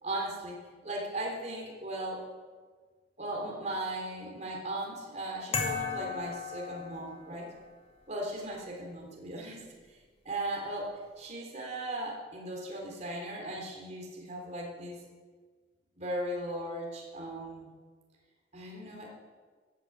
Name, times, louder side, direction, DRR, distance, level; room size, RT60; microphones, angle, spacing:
voice 1, 0.0-2.2 3.2-7.5 8.1-10.0 10.3-15.0 16.0-17.7 18.5-19.1, right 1 dB, 40° right, -1 dB, 3.7 m, -37 dB
sound 1, 5.5-7.4, left 5 dB, 35° left, 2.2 m, -35 dB
15.5 x 12.0 x 7.5 m, 1.5 s
head